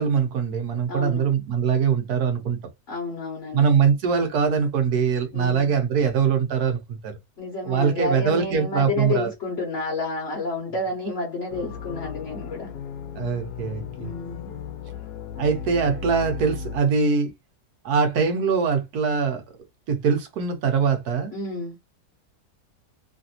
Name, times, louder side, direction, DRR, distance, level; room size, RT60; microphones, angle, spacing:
voice 1, 0.0-2.6 3.5-7.2 7.6-9.3 13.1-14.1 15.4-17.3 17.8-19.4 19.9-21.4, right 6 dB, 75° right, 1.3 m, -22 dB
voice 2, 0.9-1.3 2.9-3.7 5.3-5.7 7.4-12.7 14.0-14.5 21.3-21.8, left 2 dB, 55° left, 1.2 m, -30 dB
sound 1, 11.5-16.8, left 6 dB, 85° left, 1.2 m, -35 dB
3.2 x 2.5 x 2.7 m
omnidirectional pair, 1.7 m